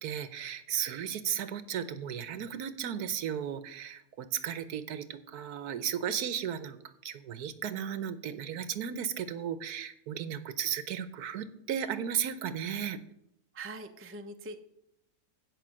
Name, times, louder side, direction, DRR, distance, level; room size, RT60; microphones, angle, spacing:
voice 1, 0.0-6.8 7.0-13.0, right 9 dB, 70° right, 13 dB, 1.2 m, -35 dB
voice 2, 13.5-14.6, right 2 dB, 15° right, 6 dB, 0.5 m, -42 dB
16.0 x 5.7 x 6.3 m, 0.78 s
omnidirectional pair, 1.8 m